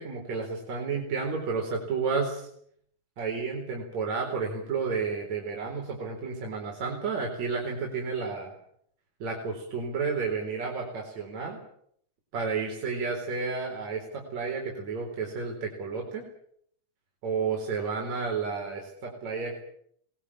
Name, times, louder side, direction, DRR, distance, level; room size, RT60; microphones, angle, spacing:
voice 1, 0.0-2.5 3.2-8.5 9.2-11.6 12.3-16.3 17.2-19.6, right 5 dB, 60° right, -1 dB, 5.6 m, -31 dB
23.5 x 20.0 x 8.6 m, 0.67 s
omnidirectional pair, 3.7 m